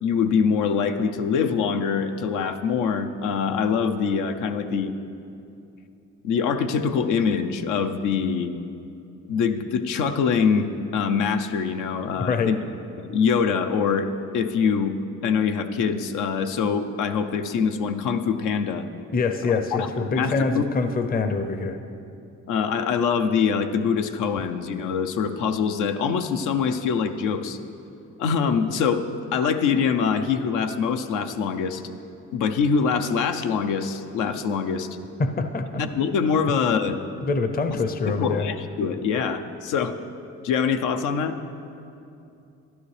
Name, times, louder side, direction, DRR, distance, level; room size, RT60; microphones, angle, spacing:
voice 1, 0.0-4.9 6.2-8.5 9.3-12.6 13.0-15.0 15.2-18.9 19.5-19.9 20.2-20.6 22.5-27.6 28.2-31.9 32.3-34.9 35.8-37.0 38.0-40.0 40.4-41.4, left 6 dB, 90° left, 8 dB, 0.6 m, -24 dB
voice 2, 19.1-21.8 35.2-35.8 37.2-38.5, left 4 dB, 30° left, 8 dB, 0.6 m, -25 dB
12.5 x 11.5 x 3.3 m, 2.7 s
cardioid pair, 90°, 30 cm